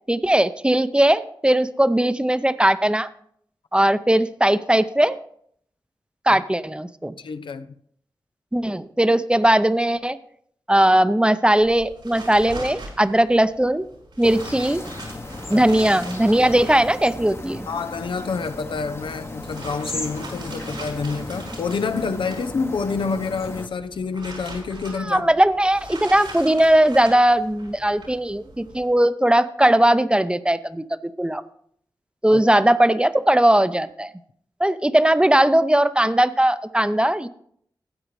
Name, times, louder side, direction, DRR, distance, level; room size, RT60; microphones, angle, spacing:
voice 1, 0.1-3.1 3.7-5.2 6.3-7.1 8.5-10.2 10.7-13.8 14.2-14.8 15.5-17.7 25.0-31.4 32.2-34.1 34.6-37.3, right 1 dB, 10° right, 0.6 m, -19 dB
voice 2, 7.2-7.7 15.5-15.6 17.7-25.3 32.3-32.4, left 4 dB, 85° left, 0.6 m, -28 dB
sound 1, 11.6-28.9, right 2 dB, 90° right, 4.1 m, -41 dB
sound 2, 14.2-23.7, left 2 dB, 30° left, 0.9 m, -35 dB
13.5 x 8.7 x 3.2 m
cardioid pair, 45°, 8 cm